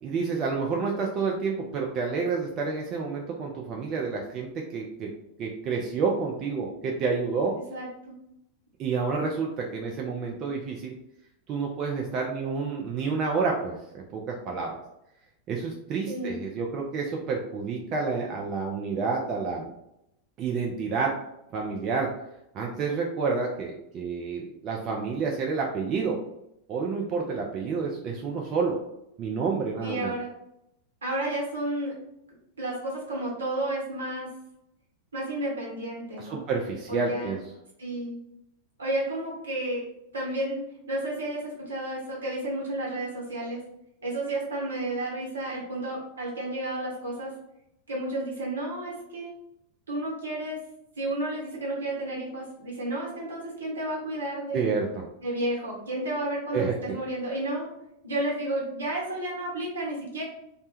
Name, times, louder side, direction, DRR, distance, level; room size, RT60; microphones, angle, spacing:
voice 1, 0.0-5.1 5.4-7.6 8.8-10.9 11.5-14.7 15.5-19.7 20.4-21.1 21.5-22.1 22.5-26.2 26.7-28.8 29.2-30.1 36.2-37.4 54.5-55.0 56.5-56.7, right 4 dB, 35° right, 0 dB, 0.3 m, -29 dB
voice 2, 7.7-8.2 16.1-16.4 29.8-30.3 31.0-31.9 32.6-34.3 35.1-36.5 36.9-37.4 37.8-38.2 38.8-39.8 40.1-40.6 40.9-43.6 44.0-47.3 47.9-49.3 49.9-50.6 50.9-54.7 55.2-57.7 58.0-60.2, right 1 dB, 70° right, -3 dB, 0.9 m, -31 dB
2.1 x 2.1 x 2.9 m, 0.83 s
figure-of-eight pair, 90°, 0 cm